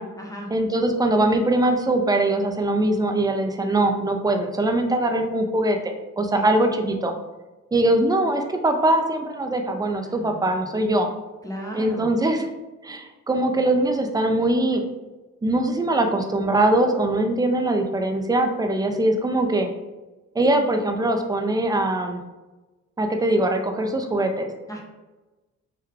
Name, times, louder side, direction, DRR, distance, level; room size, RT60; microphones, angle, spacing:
voice 1, 0.0-0.5 6.3-6.5 10.0-10.7 11.4-12.1 24.7-24.8, equal, 10° left, 0 dB, 0.7 m, -36 dB
voice 2, 0.5-7.1 7.7-11.1 11.7-12.5 12.8-14.8 15.4-19.7 20.4-22.2 23.0-24.5, right 1 dB, 15° right, 5 dB, 0.4 m, -22 dB
3.1 x 2.2 x 3.5 m, 1.1 s
cardioid pair, 90°, 30 cm